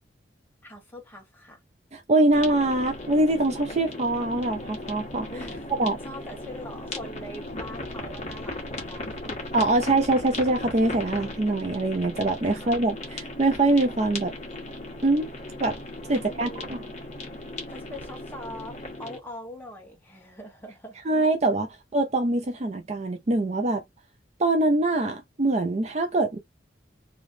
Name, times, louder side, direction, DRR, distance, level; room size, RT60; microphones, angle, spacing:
voice 1, 0.6-1.6 5.3-9.4 12.5-12.8 16.1-16.7 17.7-21.0, equal, 10° left, 1.5 m, -42 dB
voice 2, 1.9-5.3 5.7-6.0 9.5-14.3 15.0-15.3 15.6-15.8 16.1-16.8 21.1-23.8 24.4-26.4, right 2 dB, 35° right, 0.5 m, -24 dB
sound 1, 2.3-19.2, left 2 dB, 40° left, 1.4 m, -37 dB
3.1 x 3.0 x 2.7 m
head